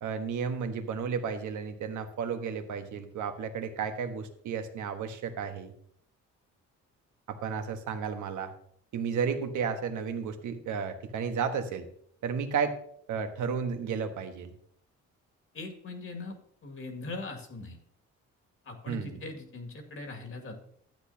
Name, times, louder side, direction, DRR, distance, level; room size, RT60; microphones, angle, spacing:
voice 1, 0.0-5.7 7.3-8.5 8.9-11.9 12.2-12.8 13.1-14.5 18.9-19.2, right 6 dB, 75° right, 7 dB, 1.2 m, -33 dB
voice 2, 15.5-16.4 16.6-17.8 18.6-20.6, left 2 dB, 45° left, 4 dB, 2.1 m, -40 dB
12.0 x 8.3 x 2.8 m, 0.65 s
cardioid pair, 90°, 30 cm